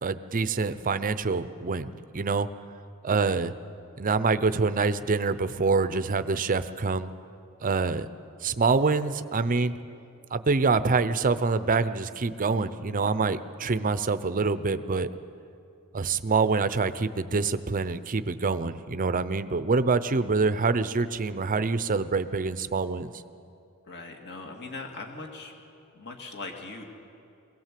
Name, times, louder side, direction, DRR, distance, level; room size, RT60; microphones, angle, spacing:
voice 1, 0.0-2.5 3.0-3.5 4.0-7.1 7.6-8.1 8.4-9.8 10.3-15.1 15.9-23.1, right 4 dB, 40° right, 13 dB, 0.6 m, -26 dB
voice 2, 23.8-25.5 25.9-26.8, left 3 dB, 50° left, 2 dB, 2.3 m, -40 dB
22.0 x 17.5 x 7.5 m, 2.6 s
head